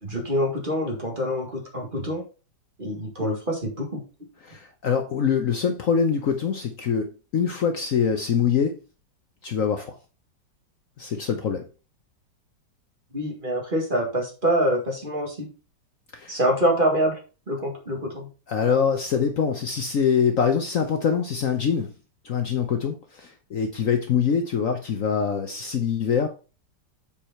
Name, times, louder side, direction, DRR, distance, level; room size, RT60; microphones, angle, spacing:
voice 1, 0.0-2.2 2.8-4.0 13.1-15.5 16.3-17.2 17.5-18.3, equal, 30° right, 0 dB, 2.2 m, -25 dB
voice 2, 4.4-8.8 9.4-10.0 11.0-11.7 16.1-16.4 18.5-21.9 22.2-26.3, left 7 dB, 55° left, 5 dB, 1.1 m, -24 dB
7.3 x 4.9 x 4.4 m, 0.33 s
omnidirectional pair, 1.9 m